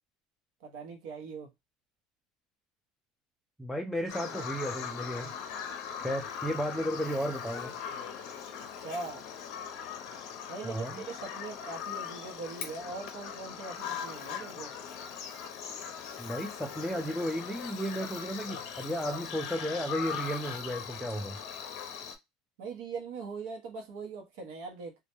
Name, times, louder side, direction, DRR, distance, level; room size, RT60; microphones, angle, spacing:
voice 1, 0.6-1.5 8.8-9.2 10.5-14.7 22.6-25.0, right 4 dB, 75° right, 0.7 m, -41 dB
voice 2, 3.6-5.3 6.0-7.7 10.6-11.0 16.2-21.4, equal, ahead, 0.3 m, -34 dB
Bird vocalization bird call bird song, 4.1-22.2, left 7 dB, 60° left, 0.5 m, -40 dB
2.2 x 2.0 x 2.9 m
cardioid pair, 150°, 0 cm